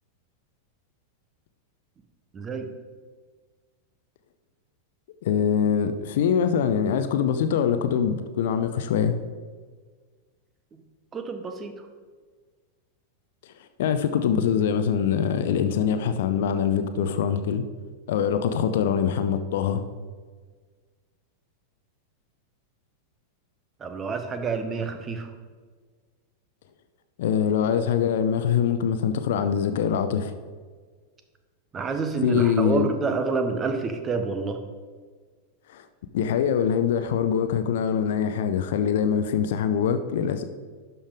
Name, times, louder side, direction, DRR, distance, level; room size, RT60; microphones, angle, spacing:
voice 1, 2.3-2.7 11.1-11.7 23.8-25.3 31.7-34.6, right 4 dB, 20° right, 7 dB, 0.9 m, -28 dB
voice 2, 5.2-9.1 13.8-17.6 18.1-19.8 27.2-30.3 32.2-32.9 35.7-35.8 36.1-40.4, left 8 dB, 55° left, 9 dB, 0.6 m, -23 dB
11.5 x 5.5 x 3.6 m, 1.5 s
figure-of-eight pair, 90°, 0 cm